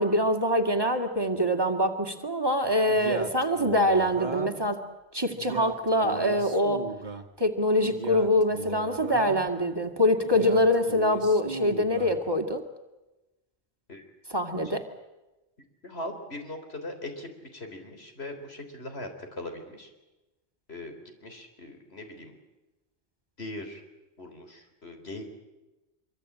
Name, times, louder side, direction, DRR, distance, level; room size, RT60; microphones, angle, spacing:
voice 1, 0.0-4.8 5.1-6.9 7.4-12.6 14.3-14.9, left 1 dB, 20° right, 4 dB, 2.3 m, -24 dB
Male speech man speaking, 2.9-4.7 5.3-7.3 7.8-9.5 10.2-12.2, right 4 dB, 45° right, 1.7 m, -37 dB
voice 2, 15.8-19.9 20.7-22.3 23.4-23.8 24.2-25.2, left 1 dB, 75° left, 5 dB, 4.1 m, -40 dB
25.5 x 24.0 x 8.7 m, 1.0 s
omnidirectional pair, 1.1 m